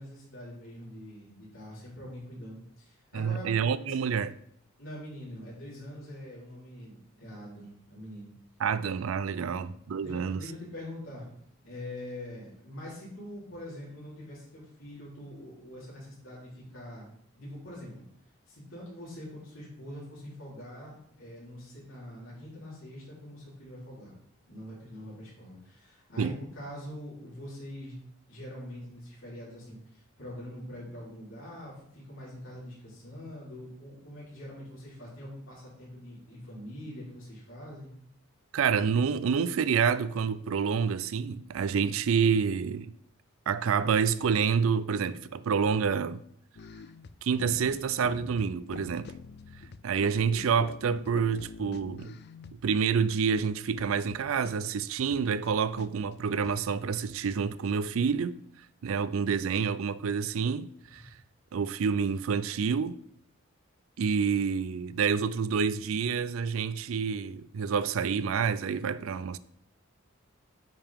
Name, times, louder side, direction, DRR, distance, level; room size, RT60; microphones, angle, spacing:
voice 1, 0.0-3.5 4.8-8.3 9.4-9.6 10.0-11.2 11.6-17.1 17.4-18.0 18.5-24.1 24.5-27.9 28.3-37.9, left 1 dB, 65° left, 3.6 m, -44 dB
voice 2, 3.1-4.4 8.6-10.4 26.2-26.3 38.5-42.9 43.5-46.2 47.2-49.1 49.8-52.1 52.6-58.4 58.8-61.0 61.5-63.0 64.0-69.4, right 6 dB, 75° right, 0.4 m, -28 dB
sound 1, 46.5-52.8 53.1-53.2 53.4-55.5 55.8-55.9 56.1-56.6, left 4 dB, 50° left, 0.4 m, -45 dB
9.0 x 5.5 x 3.6 m
head